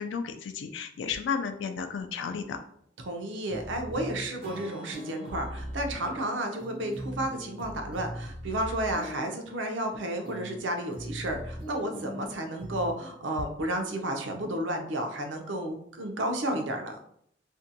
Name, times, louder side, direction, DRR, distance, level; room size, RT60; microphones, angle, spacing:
voice 1, 0.0-2.6, left 6 dB, 75° left, 7 dB, 0.3 m, -33 dB
voice 2, 3.1-17.0, right 1 dB, 75° right, 4 dB, 0.5 m, -32 dB
sound 1, 3.5-4.3 4.9-6.3 6.6-9.3 10.2-10.6 10.9-12.3 12.6-12.9, equal, 30° right, 0.6 m, -40 dB
Strum, 4.4-8.6, right 2 dB, 55° right, 1.0 m, -48 dB
2.6 x 2.2 x 2.6 m, 0.68 s
head